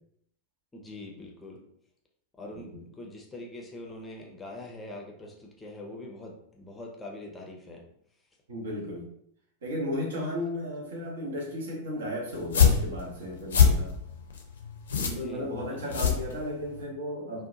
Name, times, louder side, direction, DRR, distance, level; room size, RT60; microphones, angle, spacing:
voice 1, 0.7-1.6 2.4-7.8 15.0-15.8, left 1 dB, 15° left, 0 dB, 0.5 m, -43 dB
voice 2, 8.5-9.1 9.6-13.9 15.0-17.5, left 1 dB, 65° right, -1 dB, 0.7 m, -34 dB
sound 1, 12.3-16.8, left 7 dB, 65° left, 0.4 m, -24 dB
2.7 x 2.1 x 2.5 m, 0.71 s
figure-of-eight pair, 90°, 0 cm